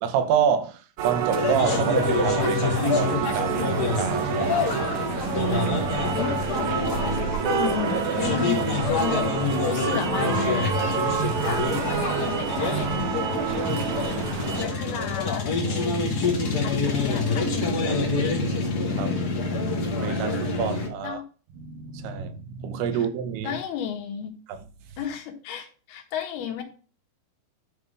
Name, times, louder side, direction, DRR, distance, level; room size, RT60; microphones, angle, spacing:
voice 1, 0.0-4.7 13.6-14.4 18.4-21.2 21.6-23.6 24.5-24.6, right 7 dB, 90° right, 2.9 m, -29 dB
sound 1, 1.0-14.6, right 6 dB, 65° right, 2.0 m, -28 dB
sound 2, 1.4-20.9, left 4 dB, 55° left, 1.0 m, -27 dB
voice 2, 7.5-9.3 9.6-13.3 14.6-16.0 16.6-18.0 21.0-21.2 23.4-24.4 25.0-26.6, left 9 dB, 80° left, 3.3 m, -33 dB
10.5 x 3.7 x 5.1 m
omnidirectional pair, 4.5 m